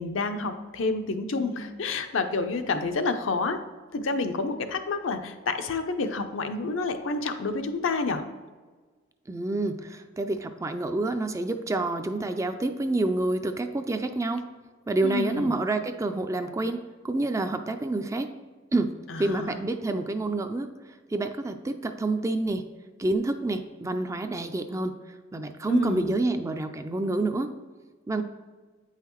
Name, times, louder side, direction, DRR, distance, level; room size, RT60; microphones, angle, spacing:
voice 1, 0.0-3.6 3.9-8.2 15.0-15.6 19.1-19.6 25.7-26.2, left 3 dB, 75° left, 7 dB, 0.6 m, -29 dB
voice 2, 9.3-14.4 14.9-16.8 17.0-18.3 18.7-20.7 21.1-22.6 23.0-24.9 25.3-27.5 28.1-28.2, right 2 dB, 15° right, 8 dB, 0.3 m, -28 dB
8.3 x 5.6 x 3.0 m, 1.4 s
head